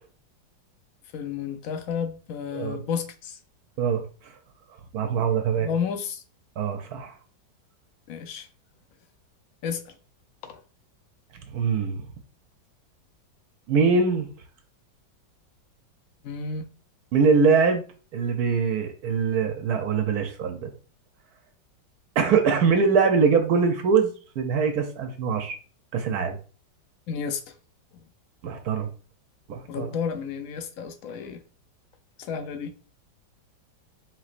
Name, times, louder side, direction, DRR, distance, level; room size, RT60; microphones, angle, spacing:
voice 1, 1.1-3.4 5.5-6.2 8.1-8.5 9.6-9.9 10.5-10.6 16.2-16.6 27.1-27.4 29.7-31.4 32.2-32.7, left 6 dB, 70° left, 0.8 m, -31 dB
voice 2, 4.9-5.7 6.6-7.1 11.5-12.0 13.7-14.3 17.1-17.8 18.1-20.7 22.2-24.1 24.4-25.6 25.9-26.4 28.4-28.9 29.5-29.9, right 5 dB, 70° right, 1.0 m, -22 dB
4.6 x 4.0 x 2.5 m
omnidirectional pair, 2.0 m